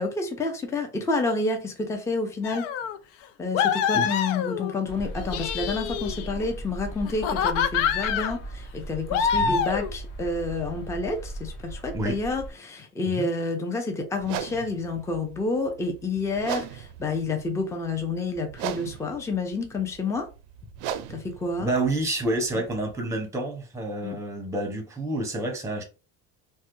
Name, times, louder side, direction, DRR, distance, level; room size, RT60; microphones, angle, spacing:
voice 1, 0.0-2.7 3.4-20.3 21.1-21.7 24.0-24.2, left 3 dB, 10° left, 0.5 m, -29 dB
sound 1, 2.4-3.0 3.5-4.8 5.2-6.5 7.1-8.4 9.1-9.9, left 7 dB, 90° left, 0.5 m, -26 dB
sound 2, 4.9-12.5, right 1 dB, 40° left, 0.9 m, -38 dB
sound 3, 14.2-23.0, right 10 dB, 90° right, 0.5 m, -38 dB
voice 2, 21.6-25.8, right 2 dB, 10° right, 0.8 m, -28 dB
3.2 x 2.1 x 3.0 m
cardioid pair, 125°, 37 cm